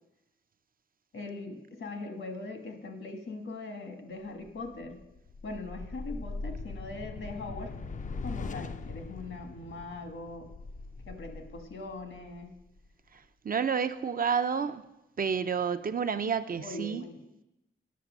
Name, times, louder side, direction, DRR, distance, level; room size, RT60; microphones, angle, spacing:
voice 1, 1.1-5.0 5.4-7.7 8.2-10.5 11.1-12.5 16.6-17.2, left 2 dB, 75° left, 1.4 m, -41 dB
sound 1, 4.4-12.9, left 3 dB, 40° left, 0.5 m, -41 dB
voice 2, 13.4-14.8 15.2-17.0, right 6 dB, 45° right, 0.5 m, -29 dB
10.5 x 5.8 x 6.1 m
wide cardioid pair, 95°, 21 cm